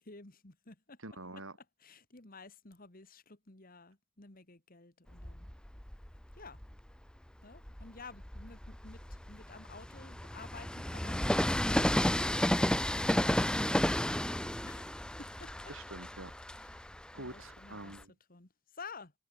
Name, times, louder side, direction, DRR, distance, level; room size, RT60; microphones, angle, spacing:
voice 1, 0.0-1.0 1.8-5.5 6.4-6.6 7.4-12.0 13.2-15.5 16.6-16.8 17.2-17.9 18.3-19.1, left 4 dB, 40° left, 1.9 m, -52 dB
voice 2, 1.0-1.6 5.4-5.5 15.7-16.3 16.7-16.9 17.1-18.1, right 2 dB, 65° right, 4.8 m, -47 dB
Train, 5.1-6.8 7.4-18.0, left 1 dB, 5° left, 0.5 m, -33 dB
head